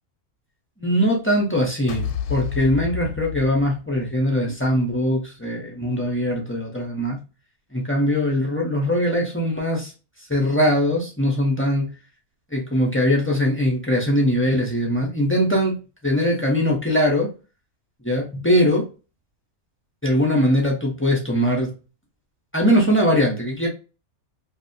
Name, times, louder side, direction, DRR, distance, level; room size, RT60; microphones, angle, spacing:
voice 1, 0.8-7.2 7.7-9.9 10.3-11.9 12.5-15.8 16.0-17.3 18.0-18.9 20.0-21.7 22.5-23.7, equal, 20° left, -1 dB, 0.4 m, -21 dB
sound 1, 1.9-4.2, left 9 dB, 85° left, 1.1 m, -30 dB
2.8 x 2.7 x 2.6 m, 0.32 s
omnidirectional pair, 1.6 m